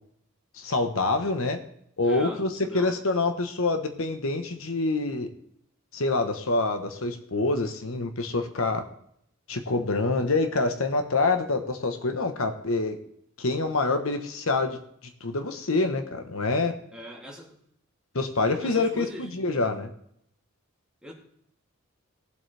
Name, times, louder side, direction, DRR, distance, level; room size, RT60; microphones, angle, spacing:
voice 1, 0.5-1.6 2.0-5.3 5.9-8.9 9.5-13.0 13.4-14.8 15.2-16.8 18.1-19.9, left 3 dB, 80° left, 7 dB, 1.2 m, -26 dB
voice 2, 2.0-2.9 16.9-17.6 18.6-19.3 21.0-21.1, equal, 5° right, -3 dB, 2.6 m, -41 dB
19.5 x 7.7 x 3.4 m, 0.70 s
head